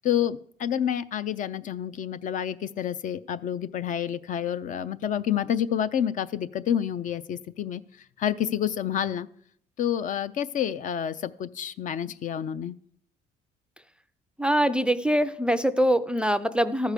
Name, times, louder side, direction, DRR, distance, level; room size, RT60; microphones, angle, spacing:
voice 1, 0.0-7.8 8.2-9.3 9.8-12.8, left 9 dB, 50° left, 14 dB, 0.5 m, -28 dB
voice 2, 14.4-16.9, equal, 5° right, 13 dB, 0.4 m, -23 dB
13.5 x 4.8 x 6.6 m, 0.65 s
cardioid pair, 110°, 17 cm